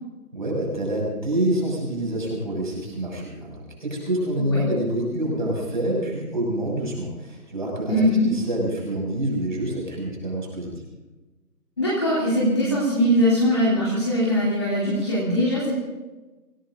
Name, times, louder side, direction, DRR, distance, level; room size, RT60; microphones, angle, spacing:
voice 1, 0.3-8.0 8.3-10.7, right 1 dB, 30° right, -2 dB, 6.7 m, -27 dB
voice 2, 7.9-8.3 11.8-15.7, equal, 15° left, -8 dB, 2.8 m, -21 dB
26.0 x 17.5 x 2.6 m, 1.2 s
figure-of-eight pair, 175°, 48 cm